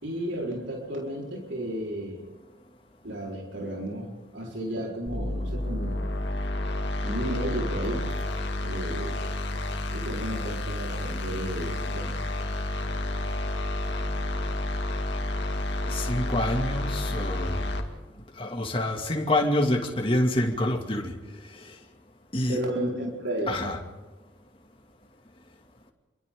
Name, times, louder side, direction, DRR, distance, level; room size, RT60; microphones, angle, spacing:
voice 1, 0.0-2.2 3.0-6.0 7.0-8.1 8.6-9.2 9.9-12.2 22.5-23.6, right 1 dB, 80° right, 4.7 m, -33 dB
sound 1, 5.1-17.8, left 1 dB, 65° left, 2.4 m, -30 dB
voice 2, 15.9-17.7 18.4-21.1 21.6-21.7 22.3-22.6 23.5-23.8, left 1 dB, 30° left, 2.5 m, -27 dB
28.5 x 24.0 x 3.9 m
head